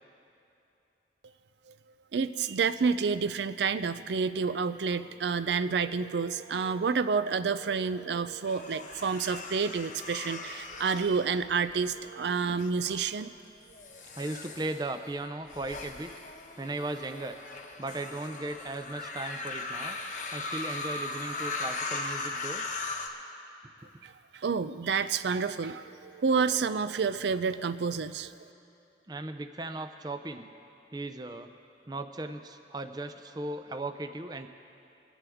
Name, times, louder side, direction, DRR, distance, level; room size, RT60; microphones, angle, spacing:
voice 1, 2.1-13.3 24.0-28.3, right 5 dB, 80° right, 13 dB, 0.4 m, -29 dB
sound 1, 8.5-11.9 12.5-13.0 13.7-23.1, left 3 dB, 45° left, 0.9 m, -38 dB
voice 2, 12.2-12.5 14.1-16.1 16.6-17.4 17.8-20.0 20.3-22.7 29.1-30.5 30.9-31.5 31.9-34.5, right 2 dB, 25° right, 8 dB, 0.5 m, -37 dB
23.0 x 10.0 x 3.5 m, 2.8 s
head